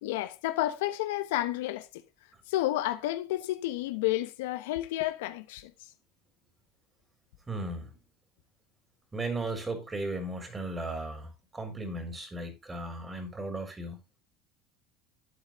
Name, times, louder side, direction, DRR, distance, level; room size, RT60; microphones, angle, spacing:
voice 1, 0.0-1.9 2.5-5.7, left 15 dB, 85° left, 1.0 m, -30 dB
voice 2, 7.5-7.9 9.1-14.0, right 2 dB, 20° right, 3.9 m, -36 dB
11.5 x 8.9 x 3.1 m
supercardioid pair, 100°, 0 cm